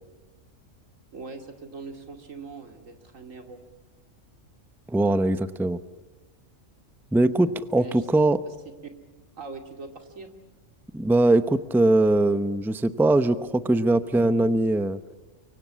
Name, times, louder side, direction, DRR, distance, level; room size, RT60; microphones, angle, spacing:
voice 1, 1.1-3.6 7.7-8.1 8.5-8.6 9.4-10.3, right 4 dB, 80° right, 6 dB, 2.9 m, -41 dB
voice 2, 4.9-5.8 7.1-8.4 10.9-15.0, right 2 dB, ahead, 13 dB, 0.6 m, -21 dB
24.5 x 24.0 x 8.4 m, 1.2 s
omnidirectional pair, 1.3 m